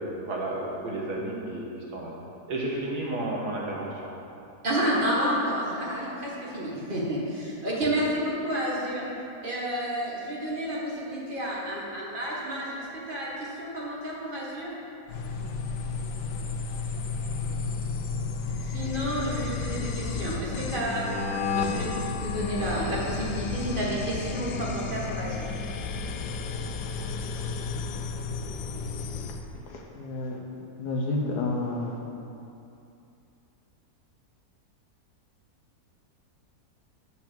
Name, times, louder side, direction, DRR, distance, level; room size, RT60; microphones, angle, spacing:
voice 1, 0.0-2.1 2.5-3.9, right 2 dB, 75° right, -3 dB, 1.9 m, -32 dB
voice 2, 4.6-9.0 9.4-14.7 18.7-21.1 21.5-25.5, equal, 30° right, -6 dB, 1.8 m, -30 dB
sound 1, 15.1-29.4, left 4 dB, 90° left, 1.2 m, -32 dB
voice 3, 29.2-32.0, left 2 dB, 70° left, 0 dB, 1.6 m, -31 dB
8.2 x 5.1 x 7.2 m, 2.7 s
omnidirectional pair, 1.8 m